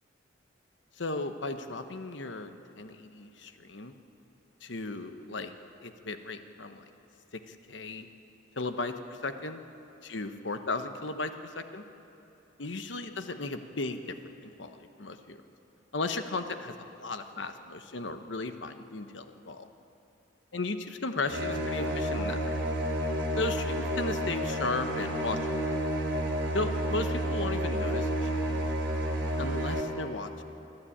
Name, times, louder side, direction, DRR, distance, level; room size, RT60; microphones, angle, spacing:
voice 1, 1.0-3.9 4.6-5.5 5.8-6.9 7.5-8.1 8.6-9.6 10.0-11.8 12.6-14.1 14.4-15.4 15.9-19.7 20.5-22.6 23.4-25.6 26.5-28.6 29.4-30.4, left 3 dB, 70° left, 8 dB, 1.2 m, -35 dB
sound 1, 21.3-29.8, equal, 80° right, 3.1 m, -30 dB
24.0 x 13.0 x 8.7 m, 2.9 s
head